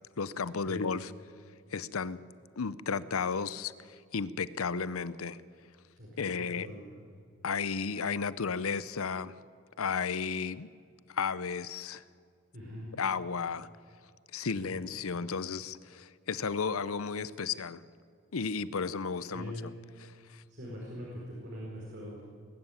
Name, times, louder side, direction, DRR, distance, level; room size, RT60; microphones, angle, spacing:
voice 1, 0.2-1.1 1.7-2.2 2.6-5.4 6.2-6.7 7.4-9.4 9.8-10.7 11.1-12.0 13.0-13.7 14.3-17.8 18.3-19.5 20.0-20.4, left 5 dB, 80° left, 17 dB, 0.7 m, -33 dB
voice 2, 6.0-6.8 12.5-12.9 14.5-14.9 19.3-19.6 20.5-22.2, equal, 50° right, -5 dB, 5.0 m, -42 dB
21.0 x 13.0 x 9.5 m, 2.2 s
head